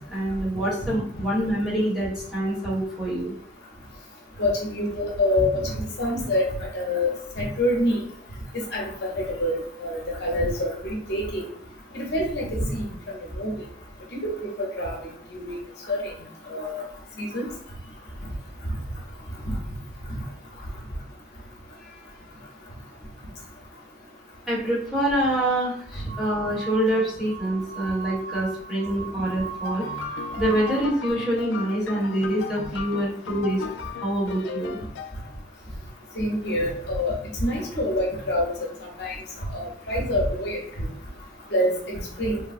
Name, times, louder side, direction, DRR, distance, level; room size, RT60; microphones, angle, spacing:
voice 1, 0.0-3.3 24.5-29.8 30.3-33.6 34.0-34.8, right 1 dB, ahead, -8 dB, 1.2 m, -25 dB
voice 2, 4.4-5.7 6.0-8.0 8.7-11.4 11.9-12.8 13.4-13.5 14.1-14.3 14.8-15.0 15.3-15.5 15.9-16.1 16.5-16.8 17.2-17.5 36.2-38.5 39.0-39.2 39.5-40.9 41.5-42.4, left 1 dB, 60° left, -2 dB, 0.8 m, -26 dB
sound 1, 26.1-30.9, right 6 dB, 25° right, 0.3 m, -37 dB
sound 2, 29.6-35.4, left 7 dB, 80° left, 0.3 m, -37 dB
3.3 x 2.2 x 2.5 m, 0.64 s
head